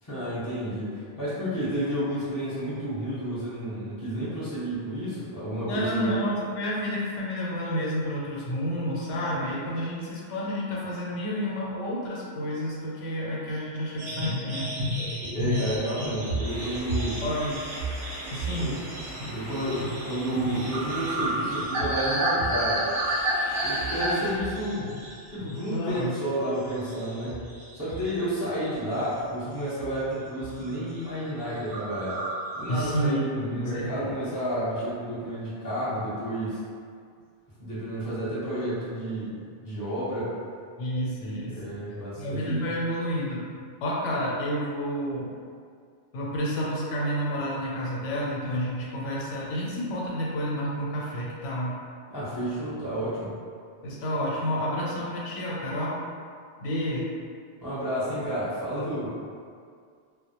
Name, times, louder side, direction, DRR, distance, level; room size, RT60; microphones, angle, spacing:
voice 1, 0.0-6.1 15.3-17.2 18.6-18.8 19.3-23.0 23.6-24.9 25.3-27.4 27.7-32.2 32.6-36.6 37.6-40.3 41.5-42.7 52.1-53.3 57.6-59.1, equal, 20° left, -10 dB, 0.7 m, -31 dB
voice 2, 5.6-14.7 17.2-17.7 18.3-18.9 25.7-26.1 32.7-34.2 40.8-41.7 42.2-43.4 43.8-45.3 46.1-51.8 53.8-56.0 56.6-57.1, equal, 85° left, -5 dB, 0.9 m, -30 dB
sound 1, 14.0-25.7 26.0-26.3 26.7-28.2 28.5-29.3 29.8-30.0 30.3-30.7 31.0-31.1 31.4-31.5 31.7-33.1, right 1 dB, 50° right, 0.7 m, -31 dB
sound 2, 16.4-24.4, equal, 10° right, 0.9 m, -42 dB
2.2 x 2.0 x 2.8 m, 2.2 s
omnidirectional pair, 1.2 m